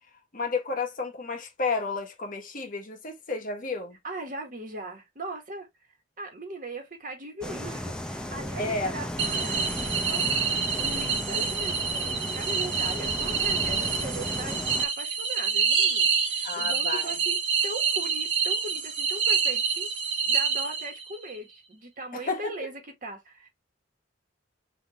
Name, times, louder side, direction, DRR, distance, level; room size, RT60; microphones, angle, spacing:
voice 1, 0.3-4.0 8.6-8.9 16.4-17.2 22.1-22.5, left 4 dB, 45° left, 1.2 m, -31 dB
voice 2, 4.0-5.7 6.2-10.2 10.8-17.4 17.6-19.9 20.2-23.5, right 2 dB, 50° right, 1.5 m, -39 dB
sound 1, 7.4-14.9, left 1 dB, 5° left, 0.7 m, -35 dB
sound 2, 9.2-21.1, right 6 dB, 75° right, 1.3 m, -27 dB
5.6 x 2.8 x 3.0 m
head